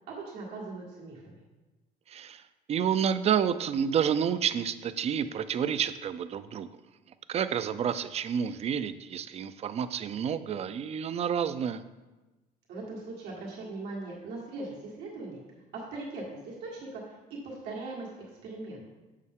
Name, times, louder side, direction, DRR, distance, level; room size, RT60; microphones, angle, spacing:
voice 1, 0.1-1.4 12.7-15.4 15.7-18.1 18.4-18.8, right 3 dB, 85° right, -4 dB, 1.7 m, -40 dB
voice 2, 2.1-2.4 2.7-6.7 7.3-11.8, right 8 dB, 40° right, 13 dB, 0.4 m, -29 dB
6.4 x 6.4 x 3.6 m, 1.2 s
cardioid pair, 110°, 17 cm